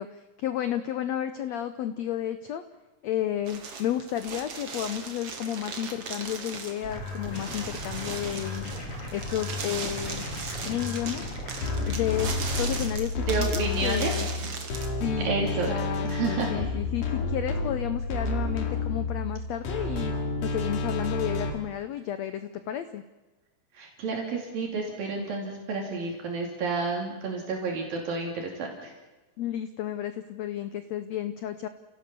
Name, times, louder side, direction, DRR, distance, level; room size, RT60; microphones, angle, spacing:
voice 1, 0.0-2.6 3.0-8.6 9.1-10.2 10.6-11.3 11.9-14.3 15.0-20.1 20.4-23.0 29.4-31.7, left 11 dB, 80° left, 11 dB, 1.5 m, -32 dB
sound 1, 3.5-14.9, right 5 dB, 45° right, 2.7 m, -38 dB
sound 2, 6.8-12.9, left 2 dB, 40° left, 4.6 m, -37 dB
sound 3, 11.6-21.5, left 3 dB, 60° left, 3.6 m, -30 dB
voice 2, 13.3-14.6 15.2-15.7 16.0-16.7 23.7-28.9, right 3 dB, 75° right, 0 dB, 4.6 m, -31 dB
30.0 x 17.0 x 6.9 m, 1.1 s
omnidirectional pair, 4.1 m